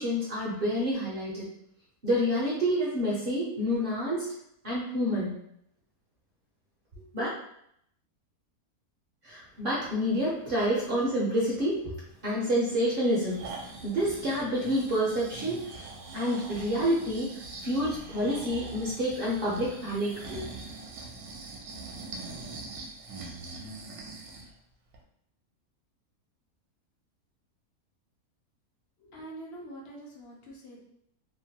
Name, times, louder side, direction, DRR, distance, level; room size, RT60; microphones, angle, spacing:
voice 1, 0.0-1.5 2.0-4.3 4.6-5.3 7.1-7.3 9.2-11.9 12.2-13.5 13.8-15.9 16.1-20.4, equal, 55° right, -6 dB, 0.6 m, -28 dB
Breathing, 13.1-24.5 24.9-25.0, right 3 dB, 75° right, 1.0 m, -43 dB
voice 2, 29.0-30.8, right 1 dB, 60° left, -2 dB, 0.7 m, -45 dB
2.9 x 2.1 x 2.7 m, 0.72 s
omnidirectional pair, 1.6 m